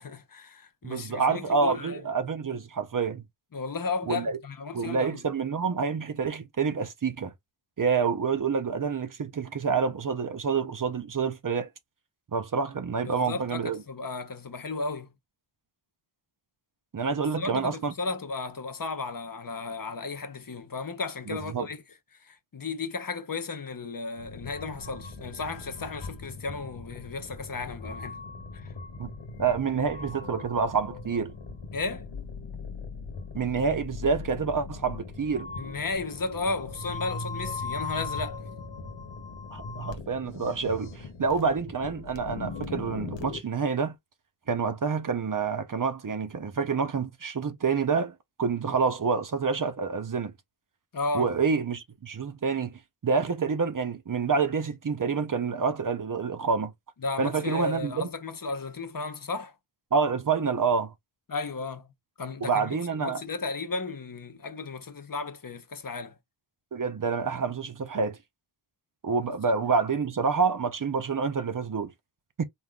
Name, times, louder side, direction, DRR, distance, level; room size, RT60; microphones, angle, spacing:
voice 1, 0.0-2.0 3.5-5.2 13.0-15.1 17.4-21.8 22.2-28.2 28.5-28.7 31.7-32.1 35.6-38.4 50.9-51.3 57.0-59.5 61.3-61.9 62.2-66.2, left 3 dB, 50° left, 0.9 m, -34 dB
voice 2, 0.8-3.2 4.1-4.4 4.7-7.3 7.8-11.7 12.3-13.8 16.9-17.9 21.3-21.7 29.0-29.1 29.4-31.3 33.3-35.5 39.5-43.9 44.5-50.3 51.1-56.7 57.2-58.1 59.9-60.9 62.4-63.2 66.7-68.2 69.0-71.9 72.4-72.5, right 5 dB, 50° right, 0.7 m, -28 dB
sound 1, 24.2-43.4, left 4 dB, 85° left, 0.9 m, -39 dB
4.2 x 3.5 x 2.3 m
wide cardioid pair, 95°, 43 cm